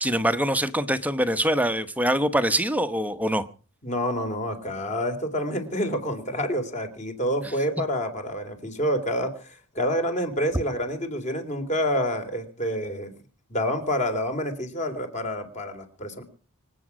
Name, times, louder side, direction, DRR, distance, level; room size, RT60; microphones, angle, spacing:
voice 1, 0.0-3.5, equal, 5° right, 10 dB, 0.9 m, -24 dB
voice 2, 3.8-13.1 13.5-16.2, equal, 35° left, 6 dB, 3.6 m, -28 dB
25.5 x 8.6 x 6.2 m, 0.39 s
head